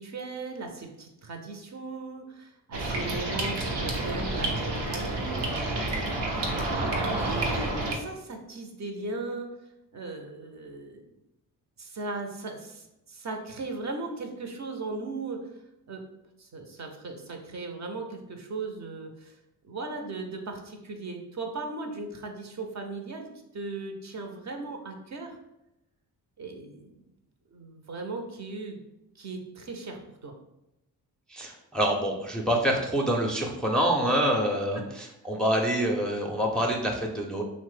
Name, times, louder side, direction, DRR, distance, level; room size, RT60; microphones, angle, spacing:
voice 1, 0.0-5.6 6.0-6.3 7.1-9.5 9.9-11.1 11.8-15.5 15.9-16.0 16.4-19.4 19.7-25.4 26.4-27.0 27.5-28.8 29.2-30.3, right 3 dB, 45° right, 3 dB, 0.6 m, -37 dB
sound 1, 2.7-7.9, right 2 dB, 85° right, 0.6 m, -29 dB
voice 2, 31.3-37.4, equal, ahead, -1 dB, 0.5 m, -26 dB
2.9 x 2.1 x 3.2 m, 0.89 s
supercardioid pair, 55°, 40 cm